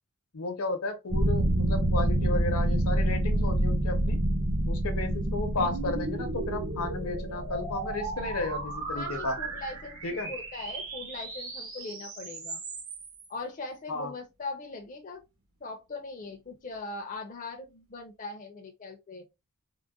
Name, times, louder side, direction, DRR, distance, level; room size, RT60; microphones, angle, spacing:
voice 1, 0.3-4.2 4.7-9.4 10.0-10.3 13.9-14.1, left 3 dB, 75° left, 0.7 m, -33 dB
sound 1, 1.1-9.5, right 1 dB, 40° right, 0.6 m, -28 dB
sound 2, 3.5-13.3, right 3 dB, 65° right, 1.1 m, -38 dB
voice 2, 8.9-12.6 13.3-15.2 15.6-19.3, left 3 dB, 35° left, 0.5 m, -40 dB
3.7 x 2.1 x 2.3 m
head